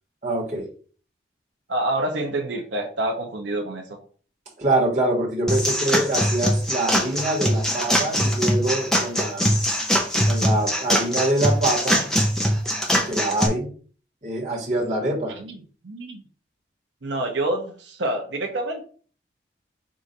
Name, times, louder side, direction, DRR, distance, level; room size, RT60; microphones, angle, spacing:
voice 1, 0.2-0.7 4.6-9.5 10.2-12.1 13.1-13.7 14.2-15.4, right 1 dB, 40° right, -4 dB, 1.4 m, -25 dB
voice 2, 1.7-4.0 15.4-15.6 15.8-16.2 17.0-18.8, right 1 dB, 80° right, 2 dB, 0.7 m, -27 dB
sound 1, 5.5-13.5, equal, 5° left, 0.6 m, -22 dB
4.8 x 2.5 x 4.0 m, 0.41 s
head